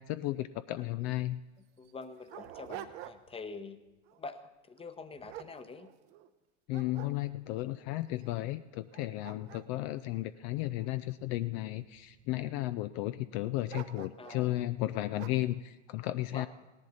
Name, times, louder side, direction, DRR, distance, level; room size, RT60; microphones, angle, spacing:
voice 1, 0.0-1.4 6.7-16.5, left 16 dB, 55° left, 12 dB, 0.5 m, -34 dB
Dog, 0.8-0.9 1.1-1.2 1.8-3.5 3.9-4.2 4.8-6.3 6.7-7.6 8.2-8.3 8.8-11.1 11.8-12.4 13.7-14.5 15.2-15.5, right 12 dB, 65° right, 0.9 m, -48 dB
voice 2, 1.8-3.8 4.2-5.9 14.2-14.5 16.3-16.5, left 4 dB, 15° left, 11 dB, 0.8 m, -45 dB
17.5 x 10.5 x 4.0 m, 1.1 s
hypercardioid pair, 85°, 37 cm